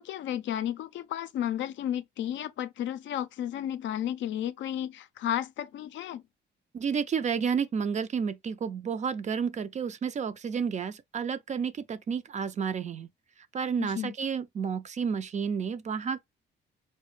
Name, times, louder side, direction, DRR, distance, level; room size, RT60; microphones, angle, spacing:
voice 1, 0.0-6.2 13.8-14.1, left 11 dB, 70° left, 0.4 m, -33 dB
voice 2, 6.7-13.1 13.5-16.2, right 6 dB, 35° right, 0.4 m, -31 dB
4.7 x 2.1 x 3.2 m
cardioid pair, 90°, 20 cm